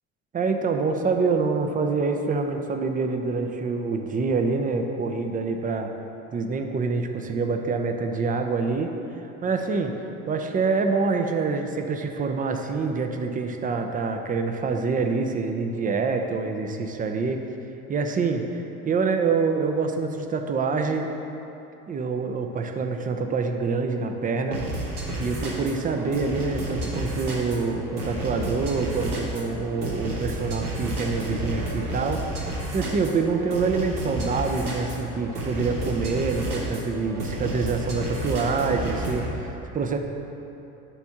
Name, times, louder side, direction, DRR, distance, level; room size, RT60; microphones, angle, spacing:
voice 1, 0.3-5.9 6.3-8.9 9.4-9.9 10.3-17.4 17.9-18.4 18.9-21.1 21.9-24.6 25.2-32.5 32.7-40.0, right 4 dB, 20° right, 5 dB, 0.5 m, -26 dB
sound 1, 24.5-39.3, right 1 dB, 90° right, 1.1 m, -31 dB
7.2 x 3.4 x 5.6 m, 2.9 s
hypercardioid pair, 70°, 44 cm